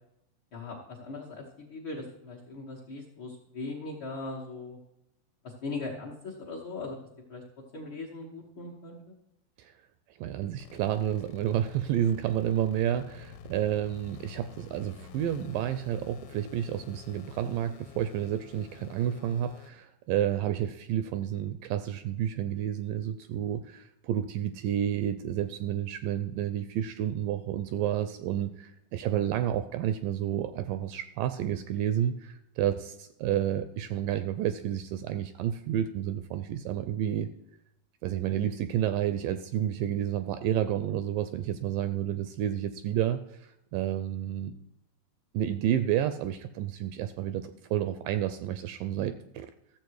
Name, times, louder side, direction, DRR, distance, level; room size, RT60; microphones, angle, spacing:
voice 1, 0.5-4.8 5.4-7.0 7.3-7.4 7.7-9.1, left 3 dB, 55° left, -5 dB, 1.4 m, -39 dB
voice 2, 10.2-37.3 38.0-44.5 45.3-49.5, right 11 dB, 80° right, 11 dB, 2.0 m, -30 dB
sound 1, 10.6-19.7, left 7 dB, 80° left, 2.4 m, -49 dB
14.0 x 7.5 x 4.7 m, 0.83 s
omnidirectional pair, 4.2 m